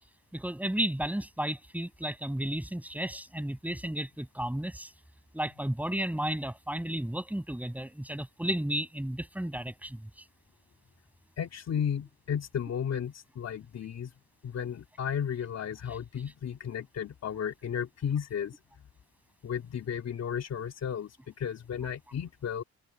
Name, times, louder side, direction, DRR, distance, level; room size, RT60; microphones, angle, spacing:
voice 1, 0.3-4.9 5.3-10.0 15.9-16.0, right 1 dB, 5° right, 6.5 m, -33 dB
voice 2, 11.4-14.1 14.4-18.5 19.4-22.6, left 8 dB, 60° left, 3.1 m, -34 dB
cardioid pair, 90°, 30 cm